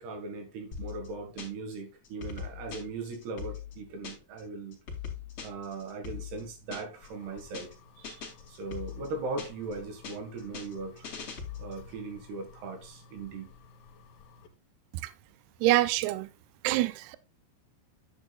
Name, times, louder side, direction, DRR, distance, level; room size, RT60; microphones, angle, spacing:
voice 1, 0.0-4.8 5.4-7.7 8.0-11.1 11.6-13.5, right 3 dB, 65° right, 3.6 m, -39 dB
sound 1, 0.7-1.7 2.0-4.4 4.7-7.1 7.4-7.7 8.0-9.7 10.0-11.8, left 7 dB, 40° left, 2.6 m, -41 dB
sound 2, 6.9-14.5, left 4 dB, 60° left, 2.7 m, -54 dB
voice 2, 15.6-16.3 16.6-17.2, right 16 dB, 85° right, 2.3 m, -25 dB
9.7 x 9.4 x 2.4 m
omnidirectional pair, 5.2 m